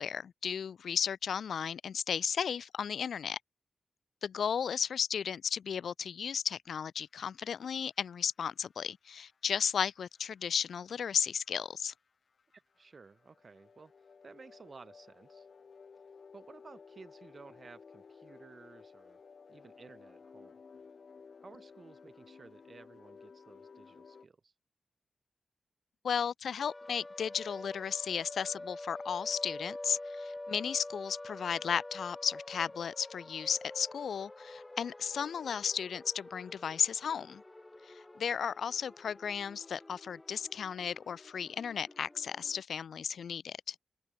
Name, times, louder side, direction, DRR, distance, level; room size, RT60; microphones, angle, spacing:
voice 1, 0.0-3.4 4.2-11.9 26.0-37.4 37.9-43.8, left 7 dB, 90° left, 0.4 m, -34 dB
sound 1, 7.0-24.3, left 5 dB, 65° left, 1.4 m, -56 dB
voice 2, 12.5-15.5 16.3-19.2 19.5-20.6 21.4-24.5, right 4 dB, 55° right, 6.2 m, -55 dB
sound 2, 26.6-42.6, left 2 dB, 25° left, 1.2 m, -47 dB
open air
cardioid pair, 65°, 0 cm